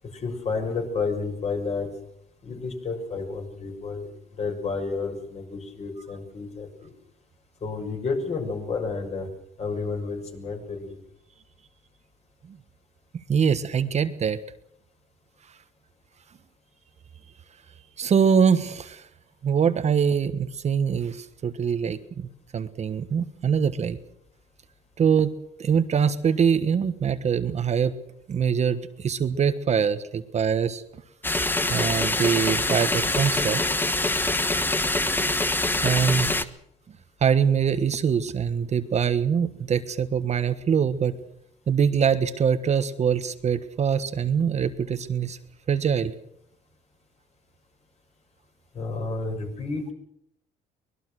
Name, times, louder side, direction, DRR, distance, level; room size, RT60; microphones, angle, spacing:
voice 1, 0.1-1.9 2.4-4.1 4.4-6.9 7.6-9.3 9.6-10.9 35.9-36.2 48.7-49.9, left 4 dB, 40° left, 4 dB, 6.3 m, -31 dB
voice 2, 13.1-14.4 18.0-19.1 19.4-24.0 25.0-25.3 25.6-28.0 28.3-30.8 31.7-33.6 35.8-36.3 37.2-41.2 41.7-45.4 45.7-46.1, right 7 dB, 40° right, 10 dB, 1.3 m, -23 dB
sound 1, 31.2-36.4, left 2 dB, 10° left, 1.3 m, -24 dB
24.0 x 20.0 x 6.5 m, 0.73 s
cardioid pair, 110°, 17 cm